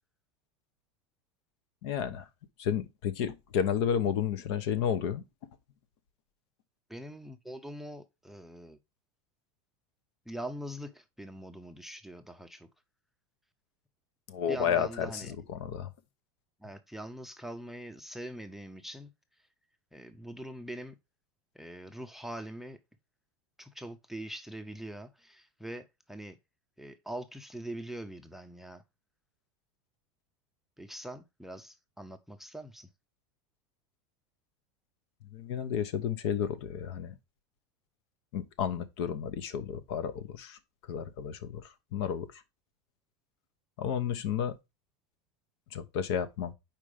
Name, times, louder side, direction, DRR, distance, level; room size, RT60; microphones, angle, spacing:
voice 1, 1.8-2.3 2.6-5.2 14.3-15.9 35.3-37.2 38.3-40.6 40.9-42.4 43.8-44.6 45.7-46.5, left 8 dB, 65° left, 1.0 m, -32 dB
voice 2, 6.9-8.8 10.3-12.7 14.5-15.3 16.6-19.1 19.9-21.0 21.5-22.8 23.6-26.4 26.8-28.8 30.8-32.9, right 1 dB, ahead, 0.5 m, -43 dB
5.0 x 4.5 x 4.9 m
supercardioid pair, 130°, 15 cm